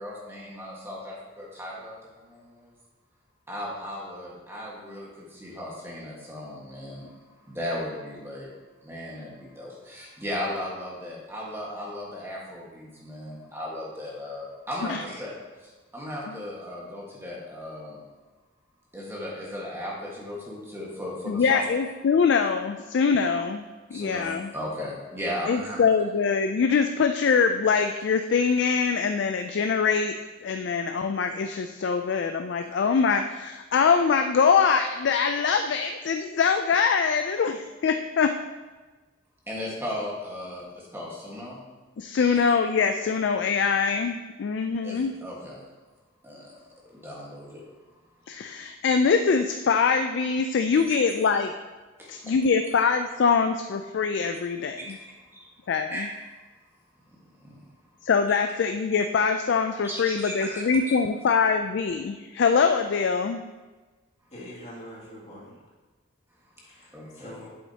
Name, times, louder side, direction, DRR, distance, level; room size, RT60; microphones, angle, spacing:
voice 1, 0.0-2.7 3.5-7.1 7.5-8.5 8.8-15.3 15.6-18.0 18.9-21.7 23.9-25.8 39.5-41.6 42.2-42.4 44.8-45.6 46.2-46.6 46.8-47.6 50.9-51.0 52.0-52.3 54.8-55.5 55.9-56.1 57.4-57.7 58.3-58.4 59.8-60.9 66.9-67.4, left 1 dB, 10° right, -4 dB, 1.5 m, -36 dB
voice 2, 21.3-23.7 23.9-24.5 25.5-30.1 30.4-38.3 42.0-45.1 48.3-51.5 52.1-55.0 55.7-56.1 58.0-63.4, left 5 dB, 60° left, 6 dB, 0.3 m, -23 dB
voice 3, 64.3-65.6 66.6-67.5, equal, 35° left, -7 dB, 2.4 m, -44 dB
8.5 x 7.3 x 2.8 m, 1.3 s
head